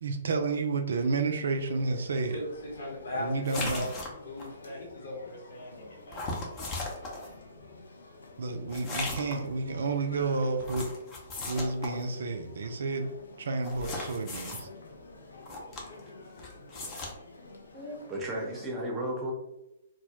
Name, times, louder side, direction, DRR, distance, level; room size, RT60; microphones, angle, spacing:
voice 1, 0.0-2.4 3.1-3.9 8.4-10.9 11.5-13.1 13.4-14.7, right 3 dB, 70° right, 5 dB, 0.3 m, -30 dB
zuidplein-shoppingcentre(mono), 1.5-18.7, left 2 dB, 80° left, 0.4 m, -50 dB
voice 2, 2.3-3.9 4.2-6.7, left 1 dB, 65° left, -3 dB, 1.0 m, -39 dB
sound 1, 3.4-4.5 6.1-7.3 8.7-9.5 10.6-12.0 13.6-14.6 15.4-16.1 16.4-17.1, left 2 dB, 25° left, 0.5 m, -37 dB
voice 3, 17.7-19.3, right 1 dB, 15° right, -2 dB, 0.6 m, -34 dB
2.1 x 2.0 x 2.8 m, 0.90 s
figure-of-eight pair, 125°, 0 cm